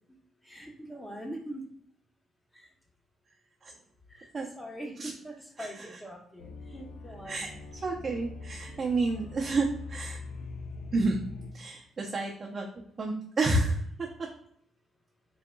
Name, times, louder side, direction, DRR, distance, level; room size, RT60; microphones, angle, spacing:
voice 1, 0.4-1.6 2.5-2.7 4.1-4.3 4.6-7.5 8.7-8.8, right 1 dB, 10° left, 1 dB, 1.0 m, -42 dB
sound 1, 6.4-11.5, left 3 dB, 85° left, 0.7 m, -43 dB
voice 2, 7.8-10.2 10.9-11.2 11.5-14.1, right 2 dB, 40° right, -1 dB, 0.6 m, -30 dB
3.8 x 3.5 x 2.2 m, 0.64 s
cardioid pair, 90°, 0 cm